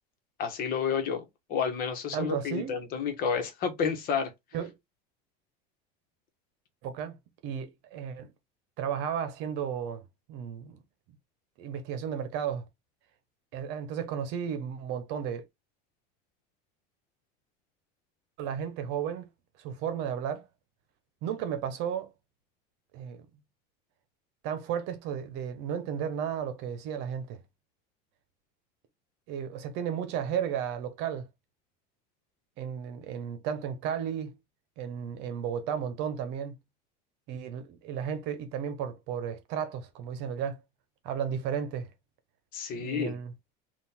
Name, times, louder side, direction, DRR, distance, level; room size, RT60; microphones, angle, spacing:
voice 1, 0.4-1.2 1.5-4.3 42.5-43.2, left 6 dB, 45° left, 1.2 m, -30 dB
voice 2, 2.1-2.8 4.5-4.7 6.8-7.2 7.4-8.3 8.8-10.0 10.3-10.8 11.6-12.6 13.5-15.4 18.4-19.3 19.6-20.5 21.2-22.1 22.9-23.3 24.4-27.4 29.3-31.3 32.6-34.4 34.8-36.6 37.3-40.6 41.0-41.9 42.7-43.3, right 8 dB, 60° right, 0.9 m, -33 dB
3.7 x 2.6 x 4.3 m
cardioid pair, 140°, 20 cm